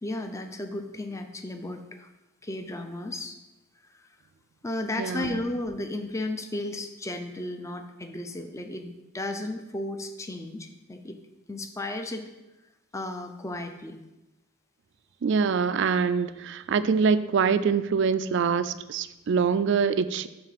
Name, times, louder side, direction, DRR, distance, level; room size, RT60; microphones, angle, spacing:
voice 1, 0.0-2.1 2.4-3.4 3.9-4.1 4.6-11.2 11.5-12.3 12.9-14.0, left 2 dB, 15° left, 6 dB, 0.5 m, -34 dB
voice 2, 5.0-5.4 15.2-20.3, right 5 dB, 55° right, 14 dB, 0.3 m, -24 dB
10.5 x 3.8 x 4.1 m, 1.0 s
head